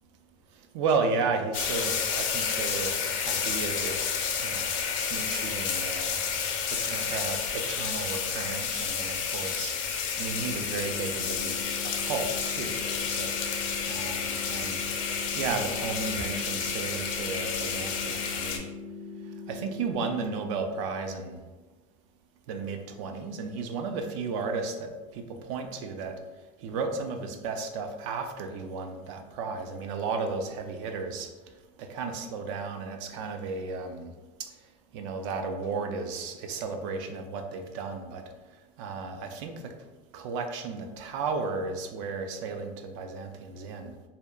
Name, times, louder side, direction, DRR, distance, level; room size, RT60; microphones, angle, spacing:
voice 1, 0.5-3.0 3.2-4.7 5.1-6.2 6.7-14.9 15.3-18.7 19.2-21.4 22.5-26.2 26.6-31.3 31.8-34.5 34.9-38.2 38.5-39.7 40.1-44.0, right 4 dB, 65° right, 5 dB, 0.4 m, -34 dB
sound 1, 1.5-18.6, left 6 dB, 75° left, 0.4 m, -30 dB
sound 2, 10.3-20.3, left 4 dB, 10° left, 0.4 m, -41 dB
2.7 x 2.1 x 2.2 m, 1.2 s
supercardioid pair, 155°, 17 cm